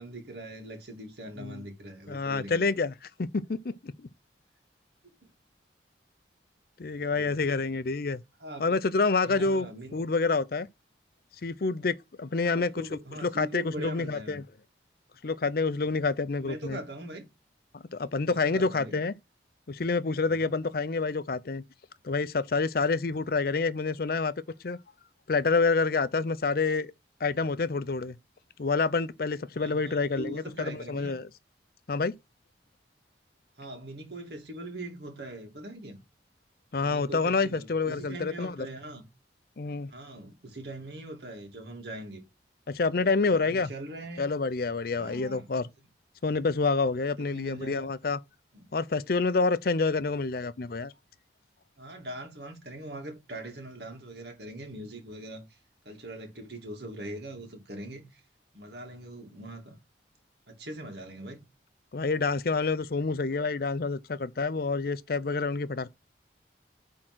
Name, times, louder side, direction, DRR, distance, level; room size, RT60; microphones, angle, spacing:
voice 1, 0.0-2.6 5.2-5.3 6.9-7.4 8.4-8.8 9.3-10.0 12.4-14.4 16.4-17.2 18.2-19.0 20.2-20.6 29.5-31.2 33.6-36.0 36.8-39.0 39.9-42.2 43.0-44.3 45.0-45.5 47.2-47.9 48.5-48.7 51.8-55.6 55.8-58.2 58.5-59.8 60.5-61.4, right 1 dB, 65° right, 2.6 m, -42 dB
voice 2, 2.1-2.9 3.2-4.1 6.8-8.2 8.6-9.7 9.9-10.7 11.4-14.4 15.2-16.8 17.7-19.1 19.7-21.6 22.0-24.3 24.6-24.8 25.3-26.9 27.2-28.2 28.6-31.3 31.9-32.1 36.7-38.6 39.6-39.9 42.7-43.7 44.2-45.6 46.2-48.2 48.7-50.9 61.9-65.9, left 4 dB, 55° left, 0.5 m, -28 dB
8.7 x 3.8 x 6.1 m
head